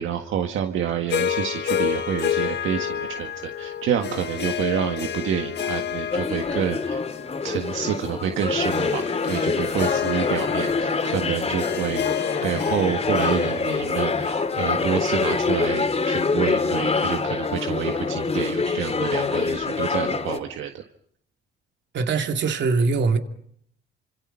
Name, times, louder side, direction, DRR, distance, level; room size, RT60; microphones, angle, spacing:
voice 1, 0.0-7.0 7.4-20.8, right 9 dB, 80° right, 1.7 m, -28 dB
Harp, 1.1-15.5, left 9 dB, 60° left, 1.6 m, -30 dB
sound 1, 6.1-20.4, left 4 dB, 30° left, 3.1 m, -25 dB
voice 2, 21.9-23.2, right 4 dB, 65° right, 2.7 m, -22 dB
30.0 x 26.5 x 5.7 m
cardioid pair, 90°, 20 cm